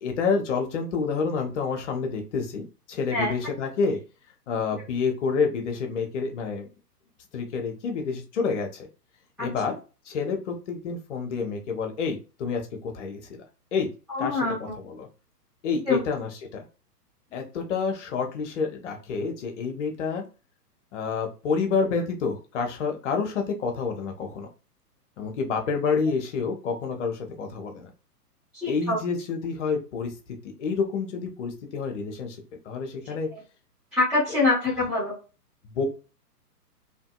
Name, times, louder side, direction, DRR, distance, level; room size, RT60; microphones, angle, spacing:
voice 1, 0.0-4.0 4.5-6.7 7.3-8.9 9.4-9.8 10.1-13.2 13.7-13.9 14.2-15.1 15.6-16.7 17.3-20.2 20.9-24.5 25.2-27.9 28.7-30.1 30.4-32.4 32.6-33.3 35.7-35.9, left 5 dB, 45° left, 3 dB, 0.9 m, -28 dB
voice 2, 14.1-14.7 15.9-16.0 28.6-29.0 33.9-35.1, left 3 dB, ahead, -14 dB, 0.4 m, -24 dB
2.8 x 2.6 x 2.3 m, 0.32 s
figure-of-eight pair, 120°, 48 cm